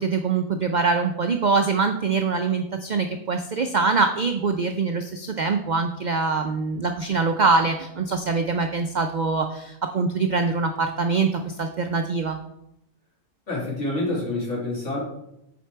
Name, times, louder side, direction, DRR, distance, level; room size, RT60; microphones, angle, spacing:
voice 1, 0.0-12.4, right 4 dB, 65° right, 6 dB, 0.4 m, -24 dB
voice 2, 13.5-15.0, left 2 dB, 65° left, -4 dB, 2.8 m, -27 dB
7.5 x 4.5 x 4.5 m, 0.81 s
omnidirectional pair, 1.4 m